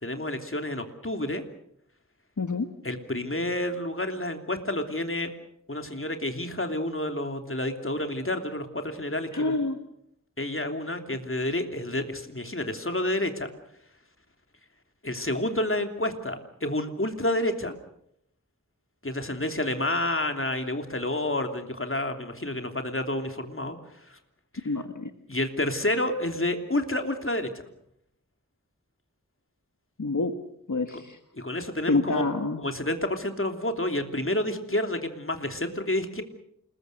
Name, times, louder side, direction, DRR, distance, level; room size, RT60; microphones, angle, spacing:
voice 1, 0.0-1.4 2.8-5.3 5.7-9.6 10.4-13.5 15.0-17.7 19.0-23.8 24.0-24.2 25.3-27.7 31.4-32.2 32.6-36.2, left 1 dB, 40° left, 6 dB, 3.1 m, -29 dB
voice 2, 2.4-2.7 9.3-9.8 24.6-25.1 30.0-30.3 30.7-31.2 31.9-32.6, left 3 dB, 65° left, 7 dB, 1.6 m, -27 dB
28.5 x 21.0 x 6.7 m, 0.73 s
wide cardioid pair, 45°, 32 cm